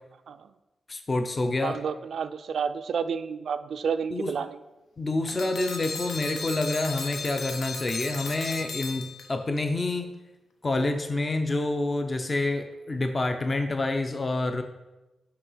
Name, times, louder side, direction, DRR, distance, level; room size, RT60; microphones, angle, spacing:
voice 1, 0.9-1.8 4.1-4.3 5.0-10.1 10.6-14.6, left 2 dB, 30° left, 6 dB, 0.5 m, -28 dB
voice 2, 1.6-4.6, right 6 dB, 75° right, 11 dB, 0.3 m, -30 dB
sound 1, 5.3-9.6, left 4 dB, 85° left, 0.8 m, -36 dB
5.7 x 4.7 x 5.5 m, 1.0 s
wide cardioid pair, 115°, 0 cm